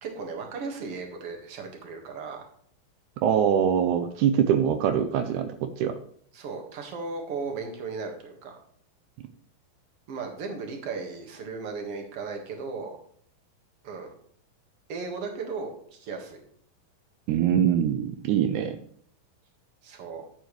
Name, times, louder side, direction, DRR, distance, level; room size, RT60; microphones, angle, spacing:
voice 1, 0.0-2.4 6.3-8.6 10.1-13.0 13.8-14.1 14.9-16.4 19.8-20.2, right 4 dB, 50° right, 2 dB, 2.2 m, -36 dB
voice 2, 3.2-6.0 17.3-18.8, right 9 dB, 85° right, 8 dB, 1.8 m, -23 dB
11.0 x 8.1 x 3.2 m, 0.62 s
omnidirectional pair, 4.2 m